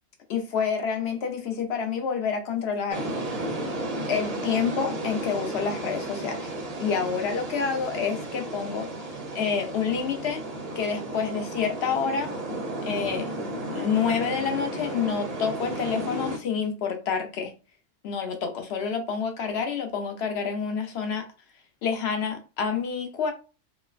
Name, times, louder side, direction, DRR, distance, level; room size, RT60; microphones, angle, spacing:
voice 1, 0.3-3.1 4.1-6.5 6.8-8.9 9.3-10.4 10.8-12.3 12.8-13.3 13.7-17.5 18.0-21.3 21.8-23.3, left 6 dB, 60° left, 0.8 m, -28 dB
sound 1, 2.9-16.4, right 1 dB, 45° right, 0.5 m, -33 dB
3.0 x 2.0 x 2.4 m
omnidirectional pair, 1.3 m